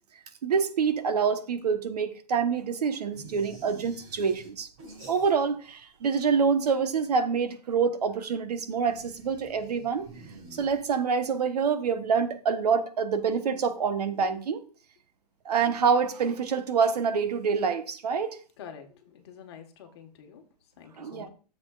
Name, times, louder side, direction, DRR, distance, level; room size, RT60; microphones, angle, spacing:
voice 1, 0.4-4.7 5.1-10.1 10.5-14.6 15.4-18.4 21.0-21.3, right 6 dB, 70° right, 1.2 m, -26 dB
sound 1, 3.1-5.7 6.0-6.8 8.8-11.3, right 3 dB, 50° right, 5.3 m, -49 dB
voice 2, 18.6-20.4 20.8-21.3, left 7 dB, 40° left, 1.5 m, -47 dB
13.0 x 7.4 x 2.5 m
hypercardioid pair, 165°, 21 cm